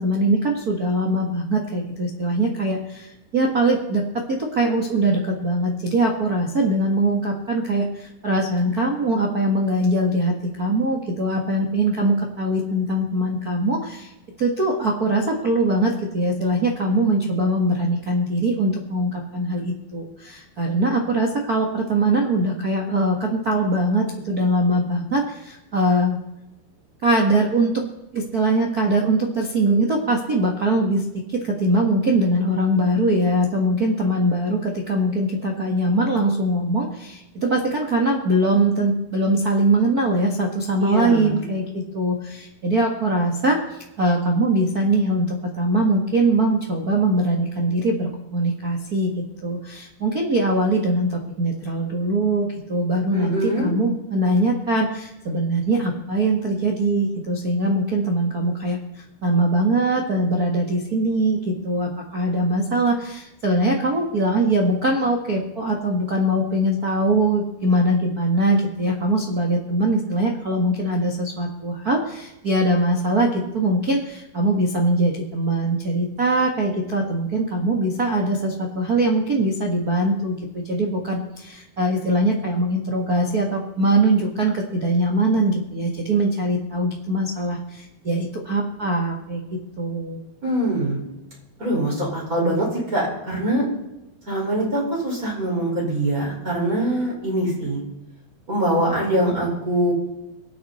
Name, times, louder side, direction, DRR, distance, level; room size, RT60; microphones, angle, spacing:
voice 1, 0.0-14.1 14.4-26.2 27.0-27.8 28.1-49.1 49.4-90.2, right 1 dB, 65° right, -1 dB, 0.9 m, -22 dB
voice 2, 40.8-41.4 53.1-53.7 90.4-91.0 91.6-93.7 94.3-97.8 98.5-99.9, right 1 dB, 20° right, -4 dB, 5.6 m, -23 dB
24.5 x 8.7 x 4.3 m, 0.93 s
omnidirectional pair, 4.5 m